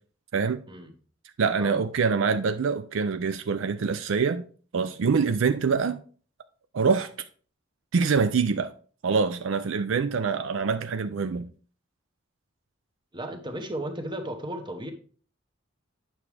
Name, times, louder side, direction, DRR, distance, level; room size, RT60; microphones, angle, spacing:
voice 1, 1.4-4.4 4.7-6.0 6.7-7.1 7.9-8.7 9.0-11.5, right 5 dB, 65° right, 0.4 m, -25 dB
voice 2, 13.1-14.9, right 1 dB, 20° right, 1.0 m, -35 dB
8.9 x 6.0 x 3.3 m
head